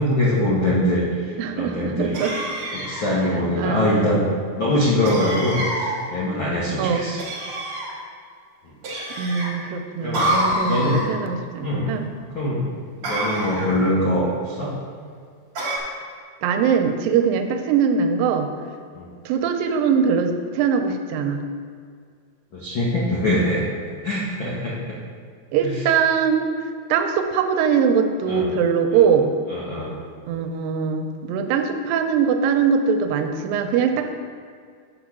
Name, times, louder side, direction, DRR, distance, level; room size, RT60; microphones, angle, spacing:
voice 1, 0.0-2.2 2.7-4.3 4.5-7.2 10.0-10.4 10.6-11.0 11.6-12.0 12.3-12.7 13.0-14.8 18.9-19.1 22.5-23.6 24.0-25.0 25.6-25.7 28.3-28.5 29.5-30.0, left 1 dB, 90° left, -6 dB, 1.0 m, -23 dB
voice 2, 1.4-2.4 3.6-4.1 5.3-5.4 6.8-7.1 9.2-12.1 16.4-18.5 19.3-21.4 25.5-26.5 26.9-29.3 30.3-34.1, right 6 dB, 85° right, 6 dB, 2.4 m, -22 dB
sound 1, 2.1-3.2 5.1-6.0 7.2-7.9 8.8-9.5 10.1-11.1 13.0-13.8 15.6-15.8, right 1 dB, 50° right, 1.8 m, -26 dB
6.8 x 5.1 x 6.1 m, 2.1 s
omnidirectional pair, 4.0 m